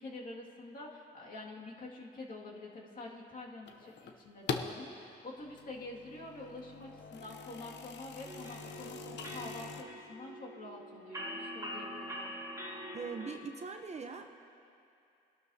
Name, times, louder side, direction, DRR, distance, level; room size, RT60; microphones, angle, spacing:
voice 1, 0.0-12.3, left 2 dB, 45° left, -3 dB, 2.2 m, -47 dB
sound 1, 3.7-4.8 5.4-9.8, left 6 dB, 65° left, 0.8 m, -43 dB
sound 2, 8.2-13.4, equal, 15° right, 2.0 m, -44 dB
voice 2, 12.9-14.3, right 5 dB, 35° right, 5 dB, 0.8 m, -41 dB
21.5 x 12.0 x 2.8 m, 2.6 s
cardioid pair, 90°, 20 cm